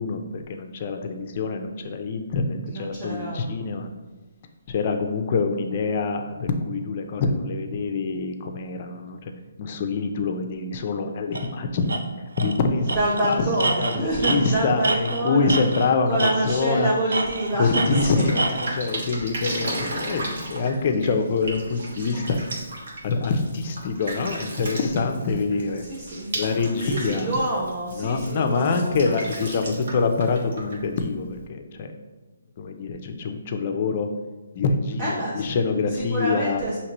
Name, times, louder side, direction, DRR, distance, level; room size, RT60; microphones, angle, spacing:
voice 1, 0.0-3.9 4.7-9.3 9.6-13.0 13.2-16.9 17.5-22.4 23.0-25.8 26.3-27.3 27.9-31.9 32.6-34.1 34.6-36.6, left 4 dB, 35° left, 5 dB, 0.5 m, -25 dB
voice 2, 2.7-4.0 12.9-15.5 16.1-18.2 18.7-19.0 25.9-26.4 26.8-29.2 35.0-35.4 36.0-36.8, right 1 dB, 25° right, -7 dB, 0.8 m, -27 dB
Tools, 11.3-11.5 11.9-12.0 12.4-12.6 12.9-15.9 16.2-16.7 17.1-18.7, right 3 dB, 85° right, 0.5 m, -27 dB
Drip, 17.4-31.4, right 1 dB, 60° right, 1.1 m, -36 dB
5.7 x 2.9 x 3.0 m, 1.2 s
hypercardioid pair, 160°, 0 cm